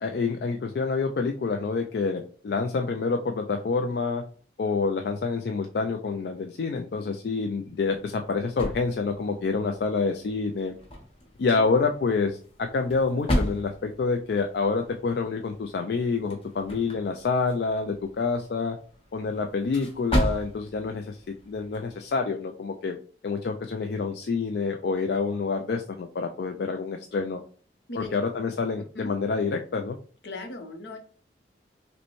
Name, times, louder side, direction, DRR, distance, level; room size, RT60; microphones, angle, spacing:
voice 1, 0.0-4.2 4.6-10.7 11.4-18.8 19.1-23.0 23.2-27.4 27.9-30.0, left 4 dB, 60° left, 4 dB, 0.3 m, -27 dB
sound 1, 7.6-22.2, equal, 35° left, 0.9 m, -35 dB
voice 2, 30.2-31.0, left 2 dB, 75° left, 5 dB, 0.8 m, -38 dB
5.1 x 2.2 x 3.0 m, 0.43 s
head